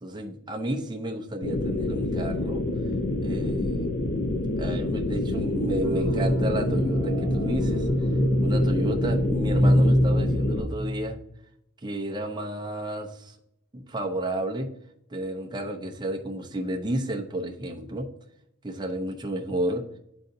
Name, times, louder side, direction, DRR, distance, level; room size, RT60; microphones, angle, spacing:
voice 1, 0.0-2.6 3.2-4.0 4.6-7.9 8.4-11.2 11.8-13.3 13.7-14.7 15.1-18.1 18.6-19.8, right 1 dB, 20° right, 1 dB, 0.7 m, -31 dB
sound 1, 1.4-10.6, left 2 dB, 50° left, 0.6 m, -28 dB
sound 2, 5.8-11.2, equal, 55° right, 1.0 m, -25 dB
11.0 x 3.8 x 2.6 m, 0.77 s
head